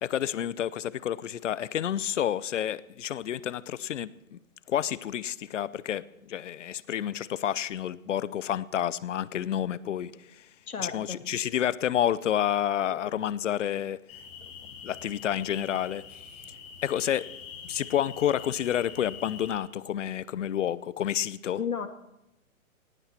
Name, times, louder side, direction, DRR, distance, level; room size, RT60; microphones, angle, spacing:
voice 1, 0.0-4.4 4.7-10.5 10.8-14.0 14.8-16.2 16.8-17.3 17.6-21.6, left 10 dB, 60° left, 20 dB, 0.8 m, -29 dB
voice 2, 10.7-11.2 21.6-21.9, left 7 dB, 80° left, 9 dB, 2.3 m, -33 dB
sound 1, 14.1-19.5, left 6 dB, 40° left, 7.1 m, -45 dB
18.5 x 16.0 x 4.4 m, 0.87 s
hypercardioid pair, 140°, 42 cm